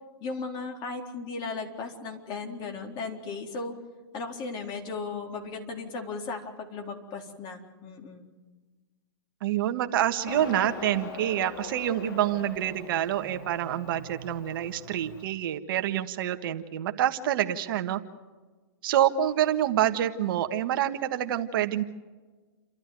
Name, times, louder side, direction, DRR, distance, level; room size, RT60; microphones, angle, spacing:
voice 1, 0.2-3.7 4.1-8.3, left 4 dB, 35° left, 3 dB, 3.9 m, -36 dB
voice 2, 9.4-18.0 18.8-21.8, right 11 dB, 60° right, 8 dB, 1.5 m, -27 dB
Motorcycle, 10.2-15.2, left 4 dB, 60° left, 3.5 m, -41 dB
29.5 x 13.0 x 9.3 m, 1.3 s
hypercardioid pair, 125°, 13 cm